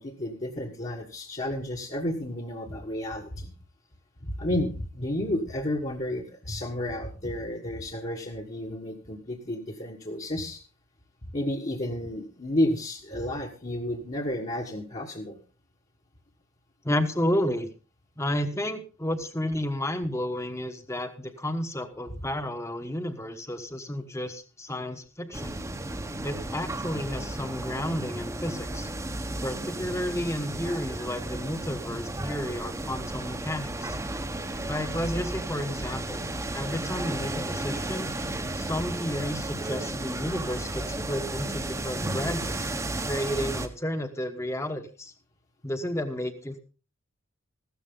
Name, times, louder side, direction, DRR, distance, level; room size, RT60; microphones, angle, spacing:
voice 1, 0.0-3.5 4.4-10.6 11.3-15.4, left 1 dB, 35° left, -2 dB, 1.5 m, -31 dB
voice 2, 16.8-17.7 18.2-25.6 26.2-28.9 29.4-33.9 34.6-36.2 36.5-38.1 38.6-42.7 43.1-45.1 45.6-46.6, left 1 dB, 15° left, 8 dB, 1.2 m, -32 dB
sound 1, 25.3-43.7, right 2 dB, 15° right, 1.0 m, -33 dB
15.0 x 12.5 x 3.8 m, 0.35 s
head